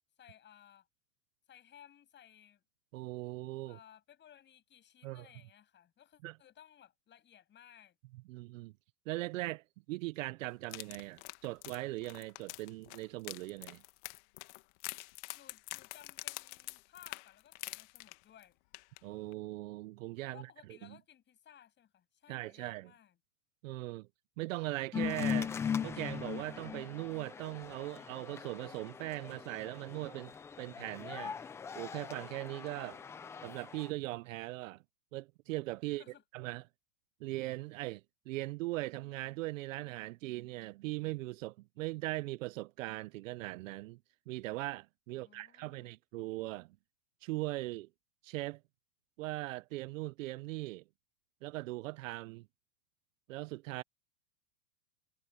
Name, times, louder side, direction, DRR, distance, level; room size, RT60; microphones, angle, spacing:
voice 1, 0.2-0.9 1.5-2.6 3.7-8.0 15.3-18.6 20.3-23.1 35.8-36.2 45.1-45.9, left 10 dB, 25° left, 7.3 m, -59 dB
voice 2, 2.9-3.8 5.0-5.3 6.2-6.4 8.3-8.7 9.1-13.8 19.0-20.5 20.8-21.0 22.3-22.9 23.6-24.1 24.4-25.5 25.8-31.4 31.7-33.0 33.4-34.8 35.1-36.0 36.3-36.6 37.2-44.0 44.3-46.8 47.2-47.9 48.2-48.6 49.2-50.8 51.4-52.5 53.3-53.8, right 19 dB, 60° right, 0.7 m, -40 dB
sound 1, 10.6-18.4 18.7-19.0 19.3-19.4, left 23 dB, 50° left, 1.5 m, -46 dB
sound 2, 24.9-33.9, left 7 dB, 5° left, 0.4 m, -40 dB
supercardioid pair, 140°, 44 cm